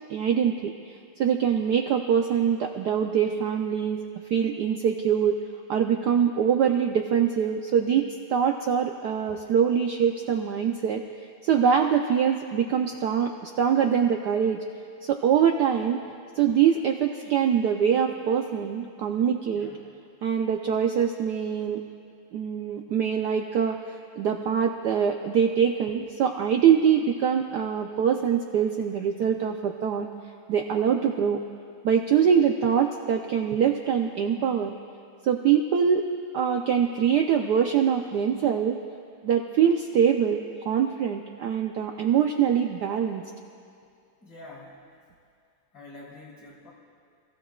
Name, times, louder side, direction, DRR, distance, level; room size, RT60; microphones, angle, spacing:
voice 1, 0.1-4.0 4.3-5.4 5.7-11.0 11.4-14.6 15.0-16.1 16.3-19.7 20.2-21.8 22.3-23.8 24.2-30.1 30.5-31.4 31.8-34.7 35.2-36.1 36.3-38.8 39.2-43.2, right 8 dB, 75° right, 3 dB, 0.9 m, -24 dB
voice 2, 19.5-19.9 44.2-45.0 45.7-46.7, left 2 dB, 65° left, -6 dB, 4.1 m, -47 dB
27.5 x 15.5 x 2.3 m, 2.4 s
omnidirectional pair, 2.4 m